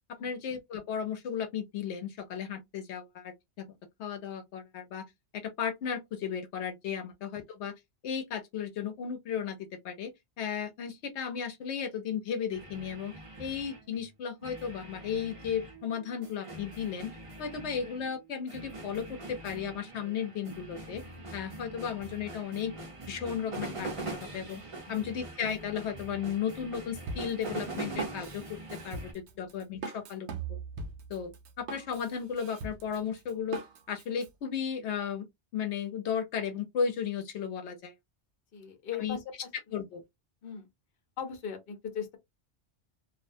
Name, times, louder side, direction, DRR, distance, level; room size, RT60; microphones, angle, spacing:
voice 1, 0.2-3.7 4.0-5.1 5.3-7.7 8.0-10.1 10.4-13.1 13.4-17.1 17.4-21.0 21.3-22.7 23.1-24.6 24.9-30.6 31.1-33.6 33.9-35.3 35.5-37.9 39.0-39.2 39.7-40.0, left 7 dB, 80° left, 0.9 m, -35 dB
sound 1, 12.5-14.1 14.4-29.1, right 2 dB, 35° right, 0.8 m, -43 dB
Drum kit, 27.1-34.3, right 4 dB, 80° right, 0.9 m, -41 dB
voice 2, 38.5-39.2 39.7-39.8 40.4-40.7 41.2-42.2, left 7 dB, 60° left, 0.9 m, -39 dB
2.4 x 2.1 x 2.6 m
omnidirectional pair, 1.1 m